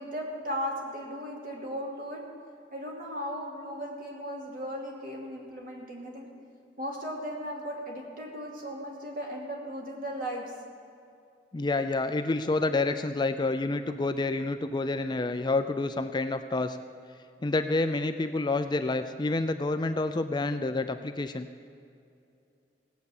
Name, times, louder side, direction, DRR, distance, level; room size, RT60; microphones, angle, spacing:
voice 1, 0.0-2.2 2.7-6.3 6.8-10.5, equal, 50° right, -1 dB, 2.7 m, -36 dB
voice 2, 11.5-16.8 17.4-21.5, left 2 dB, 25° left, 9 dB, 0.4 m, -28 dB
18.0 x 8.1 x 7.2 m, 2.5 s
head